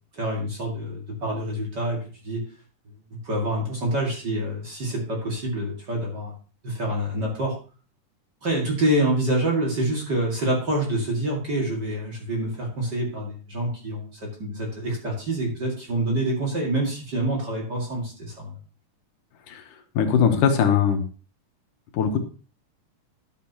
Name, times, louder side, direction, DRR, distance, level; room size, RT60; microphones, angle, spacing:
voice 1, 0.1-2.4 3.1-6.3 6.6-7.5 8.4-18.6, right 1 dB, 35° right, -2 dB, 2.3 m, -27 dB
voice 2, 20.0-21.0 21.9-22.2, left 7 dB, 80° left, 6 dB, 2.6 m, -20 dB
11.5 x 7.5 x 2.9 m, 0.37 s
omnidirectional pair, 3.7 m